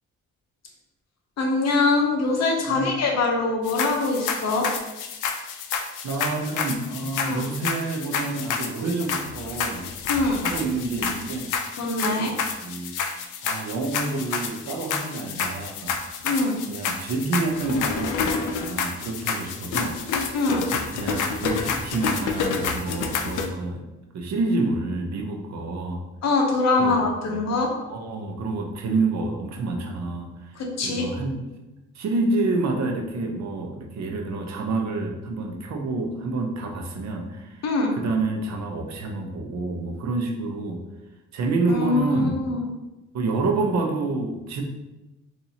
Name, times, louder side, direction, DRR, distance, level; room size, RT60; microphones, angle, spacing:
voice 1, 1.4-4.7 7.2-7.5 10.1-10.4 11.8-12.3 16.2-16.6 20.3-20.7 26.2-27.7 30.5-31.1 37.6-37.9 41.7-42.7, left 3 dB, 60° left, 1 dB, 0.9 m, -23 dB
sound 1, 3.6-23.5, left 5 dB, 85° left, 0.5 m, -29 dB
voice 2, 6.0-9.8 10.4-11.5 12.0-12.9 13.4-16.0 16.7-20.3 20.9-23.8 24.1-26.0 26.8-27.0 27.3-27.4 27.9-31.4 31.9-37.6 38.0-40.8 41.3-42.4 43.1-44.6, right 3 dB, 65° right, 2 dB, 0.7 m, -28 dB
4.1 x 2.6 x 2.8 m, 1.0 s
cardioid pair, 90°, 30 cm